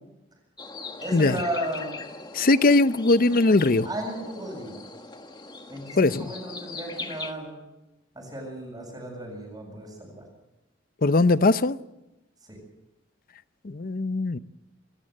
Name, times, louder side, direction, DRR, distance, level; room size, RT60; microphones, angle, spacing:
sound 1, 0.6-7.3, left 3 dB, 25° left, 1.6 m, -40 dB
voice 1, 1.0-2.0 3.9-4.8 5.7-7.6 8.2-10.2 12.5-12.6, right 1 dB, 20° right, 0 dB, 7.2 m, -34 dB
voice 2, 2.3-3.9 6.0-6.3 11.0-11.8 13.6-14.4, left 2 dB, 50° left, 14 dB, 0.7 m, -20 dB
27.0 x 14.0 x 7.8 m, 0.96 s
head